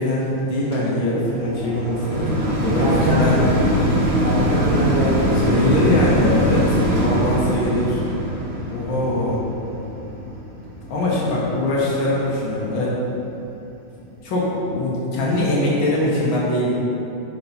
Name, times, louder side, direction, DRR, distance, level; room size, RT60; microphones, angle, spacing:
voice 1, 0.0-3.4 5.5-8.0 8.7-9.4 10.9-13.0 14.2-16.7, left 1 dB, 75° left, -6 dB, 2.1 m, -22 dB
sound 1, 0.7-12.0 12.6-12.7, equal, 60° right, 0.6 m, -23 dB
voice 2, 2.2-3.5 4.2-5.6 11.3-11.4, right 1 dB, 35° right, -8 dB, 1.5 m, -23 dB
5.9 x 5.7 x 4.1 m, 2.9 s
omnidirectional pair, 2.2 m